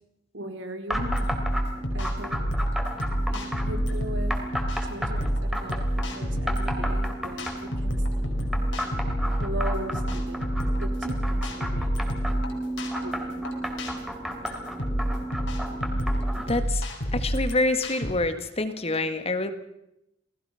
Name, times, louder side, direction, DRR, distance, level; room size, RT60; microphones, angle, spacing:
voice 1, 0.3-1.3 1.9-2.5 3.3-4.3 4.8-8.5 9.4-10.4 10.8-12.0 13.0-13.4, right 1 dB, 75° right, 5 dB, 3.8 m, -39 dB
sound 1, 0.9-18.1, equal, 80° left, 5.2 m, -28 dB
sound 2, 0.9-1.6 2.0-3.7 4.3-6.1 6.5-7.8 8.5-12.4 12.9-16.5, equal, ahead, 3.2 m, -33 dB
sound 3, 0.9-16.5, right 2 dB, 25° right, 3.7 m, -38 dB
voice 2, 16.5-16.8 17.1-19.5, left 2 dB, 35° left, 9 dB, 1.8 m, -26 dB
29.0 x 19.0 x 5.8 m, 0.82 s
head